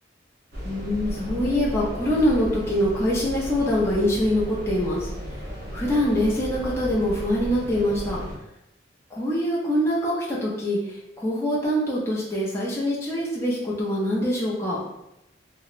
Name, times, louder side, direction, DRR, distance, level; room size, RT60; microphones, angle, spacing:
sound 1, 0.5-8.4, equal, 55° right, 0.7 m, -34 dB
voice 1, 0.6-5.1 5.7-8.2 9.1-14.8, equal, 15° left, -6 dB, 0.4 m, -24 dB
2.8 x 2.0 x 2.4 m, 0.89 s
head